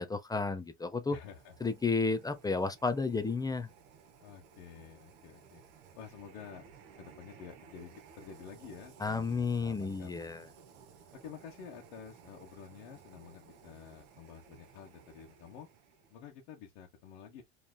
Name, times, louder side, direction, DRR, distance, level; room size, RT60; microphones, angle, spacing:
voice 1, 0.0-1.2 1.6-3.7 9.0-10.5, left 4 dB, 10° left, 0.7 m, -32 dB
sound 1, 0.9-16.3, right 6 dB, 55° right, 1.5 m, -57 dB
voice 2, 1.1-1.5 4.2-5.6 6.0-6.7 7.0-10.4 11.1-15.7 16.1-17.4, left 7 dB, 70° left, 1.4 m, -50 dB
5.2 x 3.2 x 2.3 m
supercardioid pair, 105°, 35 cm